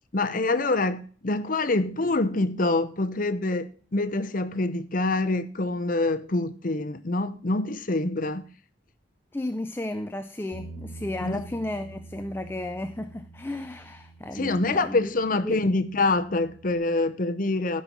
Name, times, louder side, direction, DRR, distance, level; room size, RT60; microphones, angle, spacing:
voice 1, 0.1-8.4 11.2-11.4 14.3-17.8, left 2 dB, 45° left, 0.8 m, -26 dB
voice 2, 9.3-15.1 15.4-15.6, left 1 dB, 10° left, 0.4 m, -33 dB
Bass guitar, 10.5-16.8, right 3 dB, 30° right, 2.1 m, -46 dB
13.0 x 5.5 x 6.1 m
head